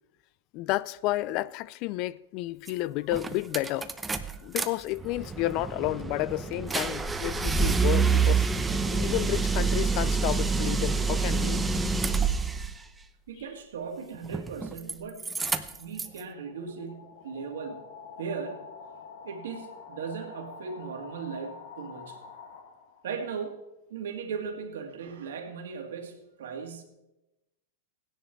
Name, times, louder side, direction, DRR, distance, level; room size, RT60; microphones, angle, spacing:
voice 1, 0.5-3.9 4.4-8.5 8.7-11.7, left 17 dB, 45° left, 0.4 m, -31 dB
sound 1, 2.7-2.8 3.1-4.7 5.0-12.7 14.2-14.9 15.2-16.2, right 5 dB, 10° right, 0.8 m, -27 dB
voice 2, 13.3-17.8 18.2-18.7 19.2-22.2 23.0-23.6 23.9-26.8, right 5 dB, 75° right, 2.3 m, -38 dB
sound 2, 15.5-23.2, left 5 dB, 70° left, 2.2 m, -47 dB
16.5 x 10.0 x 4.6 m
hypercardioid pair, 115°, 0 cm